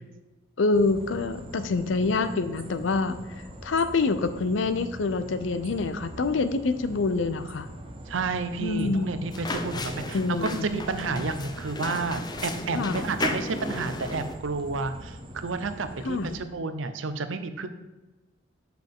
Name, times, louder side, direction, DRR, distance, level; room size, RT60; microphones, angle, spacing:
voice 1, 0.6-3.2 3.6-7.7 8.6-9.1 10.1-10.7 12.7-13.0 16.0-16.3, left 3 dB, 75° left, 11 dB, 0.5 m, -26 dB
sound 1, 0.7-16.4, right 1 dB, 30° right, 0.8 m, -42 dB
voice 2, 8.1-17.7, right 4 dB, 85° right, 10 dB, 0.6 m, -31 dB
sound 2, 9.3-14.4, left 2 dB, 20° left, 0.5 m, -34 dB
7.5 x 5.7 x 3.6 m, 1.1 s
head